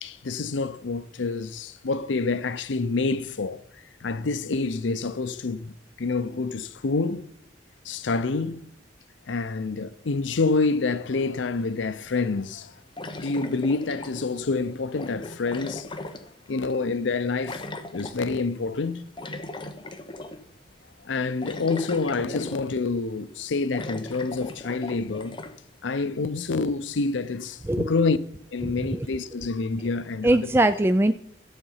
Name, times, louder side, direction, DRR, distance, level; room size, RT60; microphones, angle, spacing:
voice 1, 0.0-7.3 7.8-8.6 9.3-12.8 13.2-15.9 16.5-19.1 21.0-25.4 25.8-28.2 28.5-30.4, left 3 dB, 85° left, 0.6 m, -27 dB
sound 1, 11.6-11.7 13.0-14.4 14.9-16.7 17.4-18.2 19.2-20.4 20.8-20.9 21.4-22.9 23.3-23.4 23.7-25.6, left 2 dB, 25° left, 1.0 m, -38 dB
voice 2, 28.6-29.1 30.2-31.1, right 1 dB, 15° right, 0.4 m, -21 dB
13.5 x 8.0 x 5.6 m
head